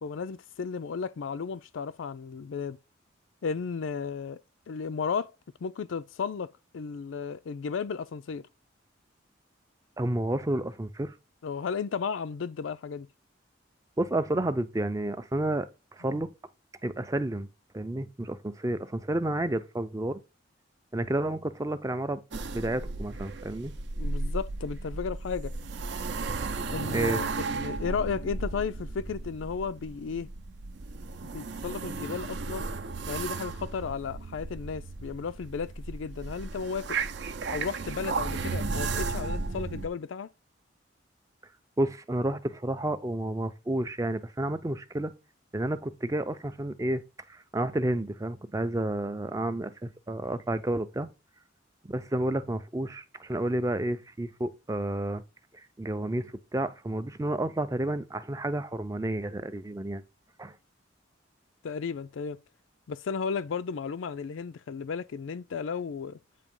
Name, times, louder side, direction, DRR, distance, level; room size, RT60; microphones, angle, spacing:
voice 1, 0.0-2.8 3.4-4.4 4.7-5.3 5.6-8.5 11.4-13.1 24.0-25.5 26.7-30.3 31.3-32.7 33.1-37.0 37.5-40.3 61.6-62.4 62.9-66.2, left 5 dB, 75° left, 0.4 m, -34 dB
voice 2, 10.0-11.1 14.0-16.3 16.8-17.5 17.7-20.2 20.9-23.7 26.9-27.2 41.8-45.1 45.5-47.0 47.3-51.1 51.9-55.2 55.8-60.0 60.4-60.5, right 1 dB, 15° right, 0.4 m, -30 dB
sound 1, 22.3-39.9, right 3 dB, 60° right, 0.6 m, -34 dB
8.4 x 2.8 x 5.3 m
head